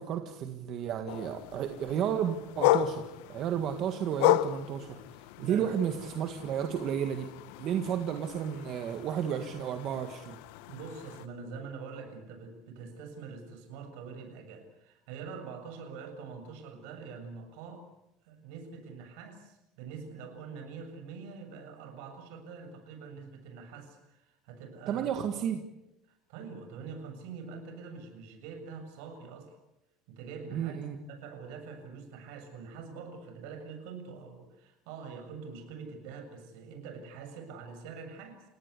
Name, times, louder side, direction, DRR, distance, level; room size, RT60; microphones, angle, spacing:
voice 1, 0.0-5.0 5.4-7.3 7.6-10.4 24.9-25.6 30.5-31.0, right 8 dB, 40° right, 6 dB, 1.7 m, -32 dB
sound 1, 1.1-11.3, left 16 dB, 85° left, 0.9 m, -33 dB
voice 2, 5.4-5.7 10.7-17.9 18.2-25.1 26.1-29.6 30.1-38.4, right 5 dB, 75° right, 7 dB, 7.2 m, -45 dB
29.5 x 18.0 x 8.4 m, 0.90 s
cardioid pair, 175°, 0 cm